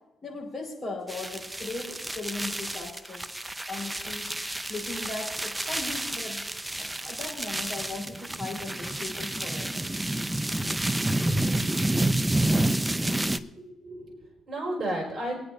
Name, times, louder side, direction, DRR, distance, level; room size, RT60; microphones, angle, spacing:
voice 1, 0.2-3.2 3.7-4.3 4.7-6.5 6.8-9.8, left 3 dB, 30° left, 0 dB, 4.9 m, -38 dB
sound 1, 1.1-13.4, right 1 dB, 10° right, 0.6 m, -29 dB
voice 2, 13.2-15.4, right 1 dB, 40° right, -1 dB, 5.4 m, -34 dB
24.5 x 9.8 x 2.7 m, 0.97 s
cardioid pair, 90°, 0 cm